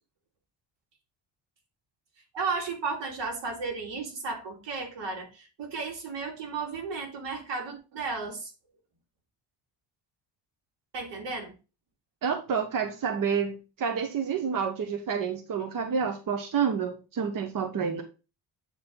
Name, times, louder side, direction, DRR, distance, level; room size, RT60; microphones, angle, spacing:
voice 1, 2.3-8.5 10.9-11.5, right 4 dB, 85° right, 2.8 m, -34 dB
voice 2, 12.2-18.0, right 6 dB, 50° right, 1.1 m, -29 dB
8.6 x 4.4 x 3.8 m
cardioid pair, 140°, 42 cm